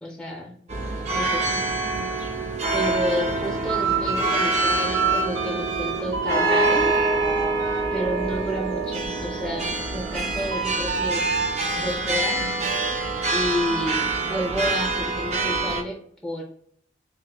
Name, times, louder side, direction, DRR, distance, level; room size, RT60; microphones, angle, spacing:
voice 1, 0.0-0.6 1.2-1.6 2.7-7.0 7.9-11.3 11.8-12.5 13.3-16.4, equal, 5° left, -2 dB, 0.6 m, -30 dB
sound 1, 0.7-15.8, right 3 dB, 40° right, 0.6 m, -26 dB
sound 2, 3.7-8.9 9.4-14.7, right 4 dB, 75° right, 0.8 m, -29 dB
3.7 x 2.6 x 2.9 m, 0.62 s
head